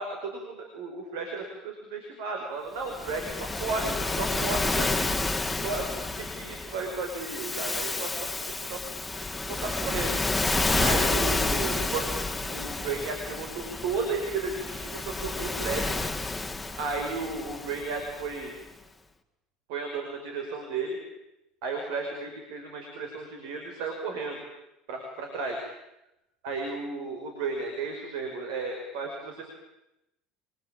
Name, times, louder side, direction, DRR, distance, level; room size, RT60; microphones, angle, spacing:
voice 1, 0.0-5.0 5.6-5.9 6.2-8.8 9.5-10.1 10.8-12.1 12.5-15.9 16.8-18.5 19.7-21.0 21.6-24.4 24.9-25.6 26.4-29.4, right 4 dB, 65° right, 3 dB, 5.4 m, -34 dB
Waves surf, 2.9-18.4, left 2 dB, 10° left, 2.2 m, -30 dB
29.5 x 22.5 x 8.9 m, 0.90 s
figure-of-eight pair, 70°, 0 cm